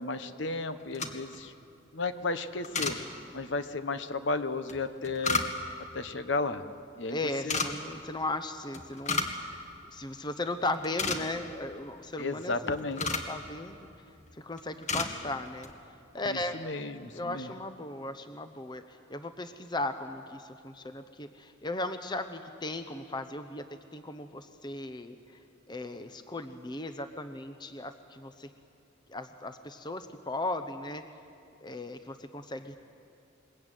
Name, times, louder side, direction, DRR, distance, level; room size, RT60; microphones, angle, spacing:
voice 1, 0.0-1.5 1.9-3.0 3.3-5.4 5.9-6.7 7.0-7.2 7.4-7.6 12.2-13.0 16.2-17.5, left 3 dB, 60° left, 10 dB, 1.2 m, -33 dB
sound 1, 0.8-1.4 2.6-3.0 4.7-5.8 7.3-7.7 8.7-9.4 9.7-9.8 10.3-10.5 10.7-11.5 12.4-13.3 14.1-14.3 14.6-15.1 15.5-15.7, left 4 dB, 35° left, 1.9 m, -32 dB
voice 2, 7.1-9.3 9.9-12.7 13.0-13.9 14.3-15.7 16.1-16.6 17.1-18.8 19.1-23.7 23.9-25.4 25.7-28.5 29.1-31.0 31.6-32.8, left 2 dB, 20° left, 8 dB, 0.8 m, -36 dB
22.0 x 22.0 x 9.2 m, 2.4 s
head